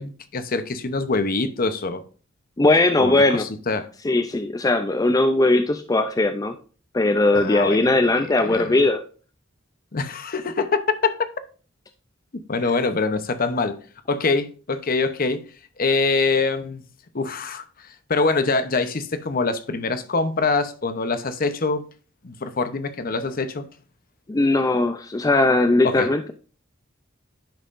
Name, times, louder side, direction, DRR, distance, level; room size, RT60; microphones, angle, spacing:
voice 1, 0.0-2.0 3.0-3.9 7.3-8.8 9.9-11.1 12.5-13.8 14.1-15.4 15.8-16.8 17.1-21.9 22.2-23.7 25.8-26.1, left 3 dB, 45° left, 0.8 m, -24 dB
voice 2, 2.6-3.4 4.0-6.5 6.9-9.0 24.3-26.3, left 2 dB, 20° left, 0.4 m, -19 dB
10.0 x 5.6 x 2.5 m
head